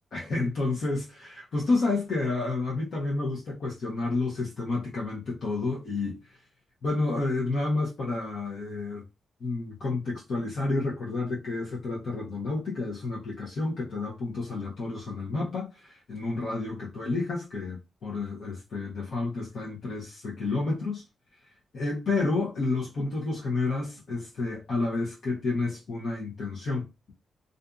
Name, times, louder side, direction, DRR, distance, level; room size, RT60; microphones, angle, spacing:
voice 1, 0.1-6.2 6.8-9.0 9.4-21.0 21.7-27.1, left 3 dB, 65° left, 0.8 m, -30 dB
2.6 x 2.5 x 2.3 m
cardioid pair, 105°, 0 cm